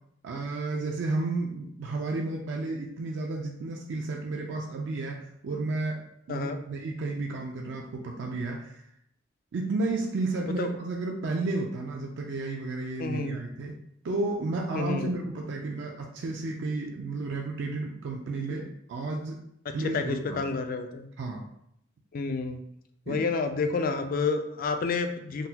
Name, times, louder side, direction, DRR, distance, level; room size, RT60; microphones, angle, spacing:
voice 1, 0.2-8.8 9.5-13.8 14.0-19.4 19.7-20.4 21.2-21.5 23.1-23.3, right 3 dB, 65° right, 0 dB, 0.4 m, -32 dB
voice 2, 13.0-13.4 14.7-15.1 19.8-21.1 22.1-22.6 23.1-25.5, left 4 dB, 45° left, 7 dB, 0.3 m, -29 dB
3.8 x 2.2 x 2.7 m, 0.74 s
head